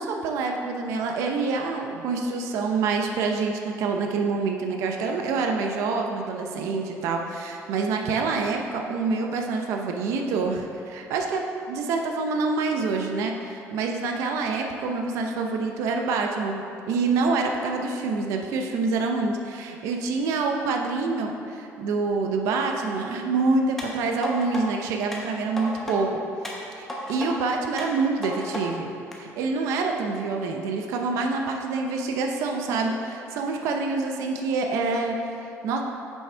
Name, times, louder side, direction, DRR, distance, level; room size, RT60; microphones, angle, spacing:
voice 1, 0.0-26.2 26.8-28.9 29.2-35.8, right 4 dB, 65° right, 2 dB, 0.6 m, -26 dB
sound 1, 23.8-24.6 25.1-26.0 26.4-27.3 27.8-28.6 29.1-29.2, left 1 dB, 5° left, 0.9 m, -34 dB
6.8 x 6.2 x 4.4 m, 2.6 s
cardioid pair, 175°, 5 cm